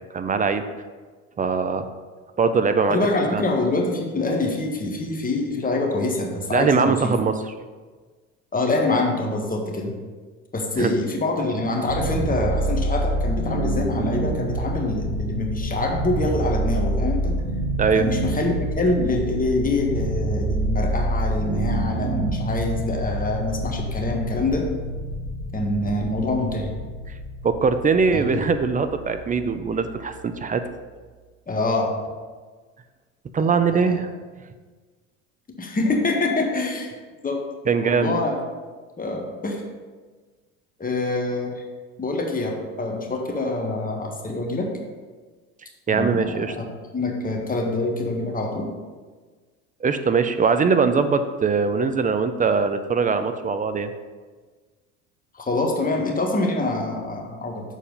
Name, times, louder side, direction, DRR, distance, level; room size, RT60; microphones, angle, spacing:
voice 1, 0.1-0.6 1.4-1.9 2.4-3.0 3.3-3.4 6.5-7.3 10.8-10.9 17.8-18.1 27.4-30.6 33.3-34.1 37.7-38.2 45.9-46.5 49.8-53.9, right 5 dB, 20° right, 9 dB, 0.5 m, -21 dB
voice 2, 2.9-7.1 8.5-9.9 10.5-17.4 17.9-24.6 25.5-26.7 28.1-28.4 31.5-31.9 33.4-34.0 35.6-36.9 37.2-37.4 37.8-38.4 39.0-39.6 40.8-41.6 42.0-44.7 45.9-46.6 46.9-48.7 55.4-57.6, left 2 dB, 20° left, 1 dB, 1.5 m, -25 dB
sound 1, 11.8-30.9, right 1 dB, 85° right, 2.2 m, -27 dB
6.9 x 4.4 x 5.5 m, 1.4 s
hypercardioid pair, 75°, 39 cm